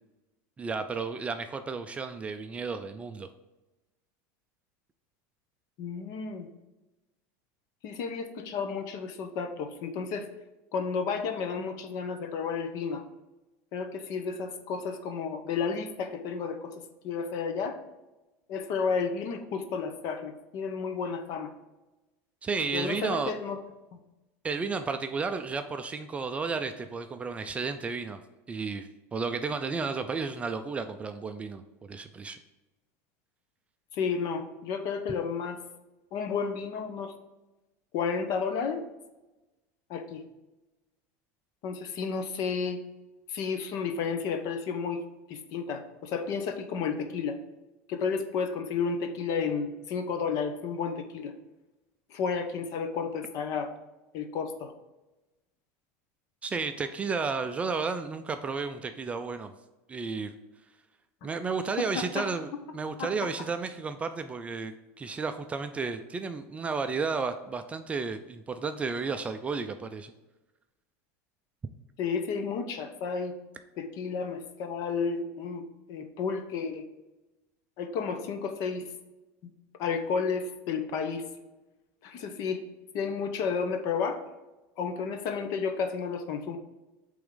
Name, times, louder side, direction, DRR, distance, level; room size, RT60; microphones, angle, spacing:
voice 1, 0.6-3.3 22.4-23.3 24.4-28.2 28.5-31.6 31.9-32.4 56.4-59.5 59.9-60.3 61.2-70.1, right 4 dB, 15° right, 8 dB, 0.3 m, -32 dB
voice 2, 5.8-6.5 7.8-10.3 10.7-13.0 13.7-16.7 17.0-17.8 18.5-21.5 22.7-23.6 23.9-24.0 33.9-35.6 36.1-37.1 37.9-38.8 39.9-40.2 41.6-42.8 43.3-45.0 45.3-47.4 47.9-51.3 52.1-53.7 54.1-54.7 61.2-61.3 62.0-62.3 63.0-63.1 72.0-73.3 73.8-76.8 77.8-78.9 79.8-81.3 82.0-82.6 82.9-84.2 84.8-86.6, left 5 dB, 50° left, 7 dB, 0.8 m, -32 dB
8.2 x 3.5 x 3.8 m, 1.1 s
supercardioid pair, 145°, 8 cm